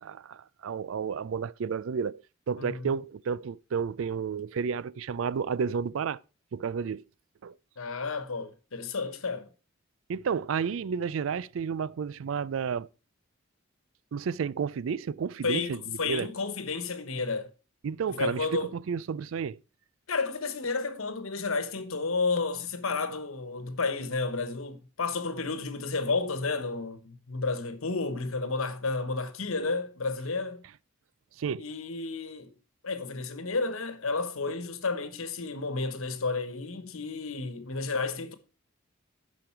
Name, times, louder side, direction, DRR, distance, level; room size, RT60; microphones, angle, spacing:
voice 1, 0.0-6.2 6.5-7.0 7.4-7.5 10.1-12.9 14.1-16.3 17.8-19.6 31.4-31.6, right 6 dB, 70° right, 0.4 m, -31 dB
voice 2, 7.8-9.5 15.4-17.5 18.2-18.7 20.1-30.6 31.6-32.5 32.8-38.3, left 3 dB, 90° left, 1.2 m, -31 dB
11.5 x 5.2 x 4.6 m
head